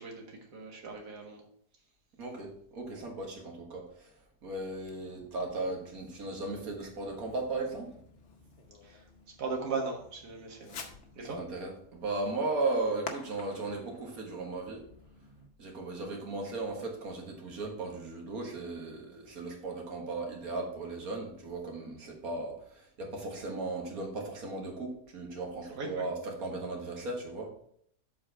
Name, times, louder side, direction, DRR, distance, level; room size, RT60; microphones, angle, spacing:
voice 1, 0.0-1.4 8.8-9.0 9.4-10.8 11.2-11.4 25.8-26.1, right 4 dB, 85° right, 1 dB, 2.0 m, -38 dB
voice 2, 2.2-4.1 4.4-7.9 11.2-14.8 15.6-27.5, right 2 dB, 65° right, 0 dB, 1.9 m, -36 dB
Fireworks, 4.8-15.5, left 5 dB, 55° left, 1.0 m, -51 dB
7.5 x 4.3 x 4.4 m, 0.66 s
omnidirectional pair, 1.7 m